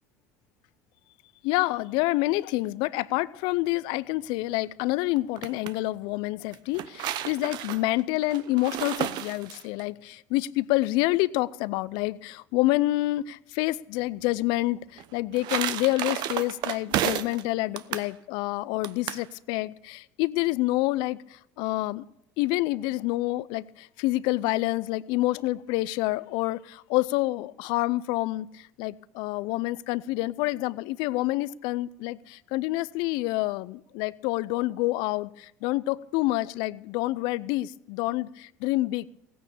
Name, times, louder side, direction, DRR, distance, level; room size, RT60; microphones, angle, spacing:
voice 1, 1.4-22.0 22.4-39.1, left 18 dB, 65° left, 20 dB, 0.5 m, -28 dB
sound 1, 5.2-5.7 6.5-9.8 15.0-17.4 17.8-18.1 18.8-19.3, right 12 dB, 60° right, 0.8 m, -32 dB
16.5 x 9.3 x 7.0 m, 0.78 s
hypercardioid pair, 85°, 8 cm